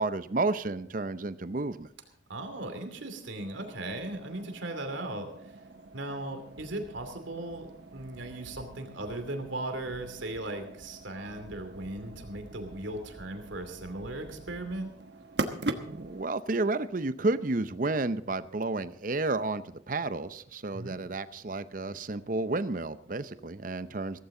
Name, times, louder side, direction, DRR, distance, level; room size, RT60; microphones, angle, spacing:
voice 1, 0.0-1.9 15.9-24.2, right 2 dB, 45° right, 13 dB, 0.6 m, -31 dB
voice 2, 2.3-5.5 5.9-14.9 20.7-20.9, right 1 dB, 80° right, 6 dB, 2.7 m, -37 dB
sound 1, 3.4-16.2, right 2 dB, 60° right, 1.2 m, -42 dB
16.5 x 15.5 x 3.8 m, 0.69 s
head